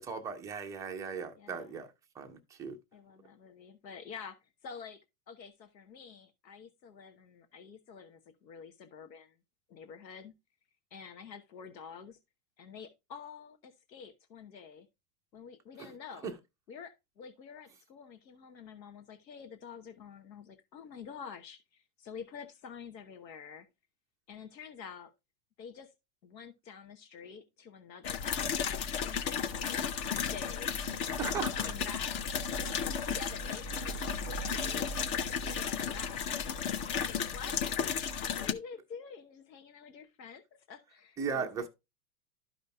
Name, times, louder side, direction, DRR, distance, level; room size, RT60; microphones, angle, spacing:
voice 1, 0.0-1.9 2.2-2.8 15.8-15.9 16.2-16.3 31.2-31.7 41.2-41.7, right 6 dB, 10° right, 0.3 m, -37 dB
voice 2, 1.3-1.8 2.9-9.4 9.7-10.3 10.9-12.2 12.6-14.9 15.3-16.3 16.7-23.7 24.3-25.1 25.6-25.9 26.2-29.8 30.1-30.7 31.2-32.2 33.0-34.0 34.2-37.7 38.2-40.4 40.7-41.7, left 6 dB, 90° left, 1.1 m, -48 dB
sound 1, 28.0-38.5, left 6 dB, 35° left, 0.7 m, -34 dB
12.5 x 5.1 x 2.2 m
hypercardioid pair, 115°, 49 cm